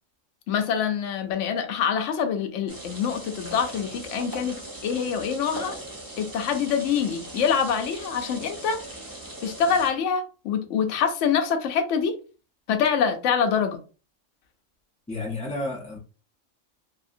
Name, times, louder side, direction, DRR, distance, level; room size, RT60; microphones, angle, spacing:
voice 1, 0.5-5.8 6.2-8.8 9.4-12.2 12.7-13.8, left 7 dB, 75° left, 0.9 m, -25 dB
sound 1, 2.7-9.9, right 1 dB, 20° right, 0.6 m, -39 dB
voice 2, 15.1-16.0, left 2 dB, 10° left, 0.3 m, -31 dB
2.7 x 2.5 x 2.5 m
omnidirectional pair, 1.3 m